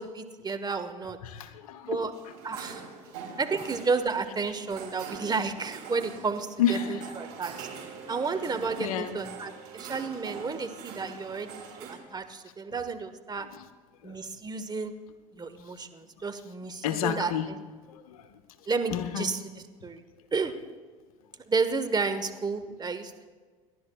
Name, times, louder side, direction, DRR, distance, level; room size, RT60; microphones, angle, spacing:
voice 1, 0.0-1.2 1.8-2.1 2.4-2.8 3.4-7.7 8.1-13.5 14.0-14.9 15.4-17.6 18.7-19.4 19.8-20.0 20.3-20.5 21.5-23.3, right 4 dB, 25° right, 8 dB, 1.2 m, -31 dB
voice 2, 1.2-2.0 6.6-6.9 8.3-8.4 8.8-9.2 13.5-13.6 14.0-14.2 16.8-17.5 17.9-18.4 18.9-19.3, left 8 dB, 80° left, 10 dB, 0.9 m, -30 dB
sound 1, 2.1-11.9, right 6 dB, 70° right, 3.9 m, -43 dB
29.5 x 11.5 x 2.3 m, 1.5 s
hypercardioid pair, 70°, 18 cm